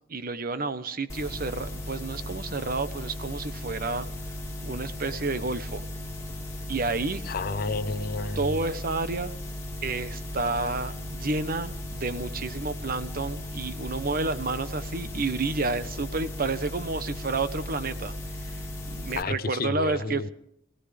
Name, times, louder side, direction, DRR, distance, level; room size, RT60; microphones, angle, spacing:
voice 1, 0.0-4.1 4.6-5.8 6.7-7.2 8.4-9.3 9.8-18.1 18.4-18.6 18.9-20.3, right 3 dB, 55° right, 0.9 m, -30 dB
sound 1, 1.1-19.2, left 1 dB, 15° left, 2.6 m, -36 dB
voice 2, 7.2-8.5 19.2-20.3, left 3 dB, 55° left, 0.6 m, -31 dB
25.0 x 17.0 x 3.4 m
head